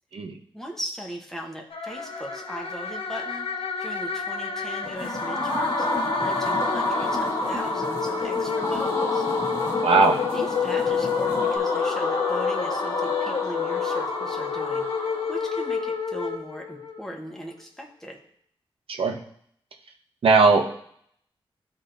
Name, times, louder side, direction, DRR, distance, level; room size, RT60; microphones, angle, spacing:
voice 1, 0.5-5.9 6.2-9.3 10.3-18.2, equal, 5° left, 0 dB, 0.9 m, -38 dB
sound 1, 1.7-17.0, left 6 dB, 75° left, 0.6 m, -29 dB
sound 2, 4.8-15.7, left 1 dB, 30° left, 1.0 m, -29 dB
sound 3, 4.8-11.6, left 1 dB, 30° right, 1.8 m, -38 dB
voice 2, 9.8-10.2 18.9-19.2 20.2-20.7, right 4 dB, 75° right, 4 dB, 0.8 m, -19 dB
13.5 x 4.5 x 2.5 m, 0.66 s
wide cardioid pair, 170°, 10 cm